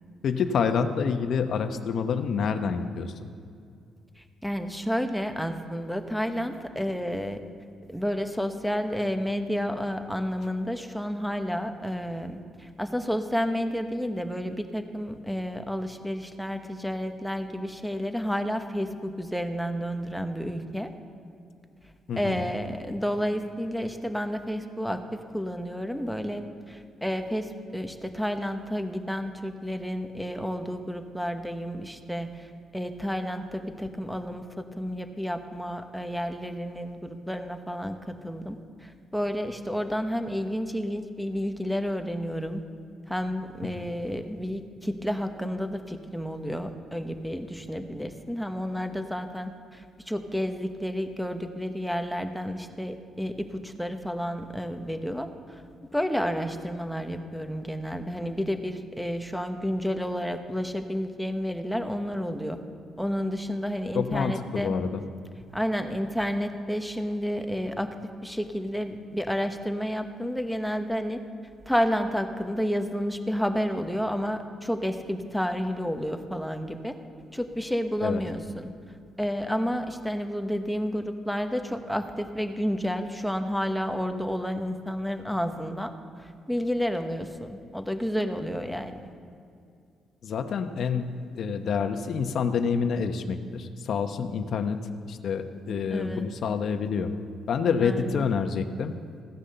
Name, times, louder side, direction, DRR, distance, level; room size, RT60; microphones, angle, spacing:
voice 1, 0.2-3.1 22.1-22.5 43.6-43.8 63.9-65.0 78.0-78.2 90.2-97.1 97.5-98.9, left 6 dB, 65° left, 8 dB, 0.9 m, -28 dB
voice 2, 4.2-7.4 7.9-20.9 22.2-42.6 43.1-55.3 55.9-62.6 63.0-64.7 65.5-67.9 68.2-71.2 71.7-77.0 77.3-78.7 79.2-85.9 86.2-89.1 95.9-96.3 97.8-98.3, equal, ahead, 6 dB, 1.1 m, -30 dB
16.0 x 9.9 x 6.8 m, 2.3 s
cardioid pair, 90°, 0 cm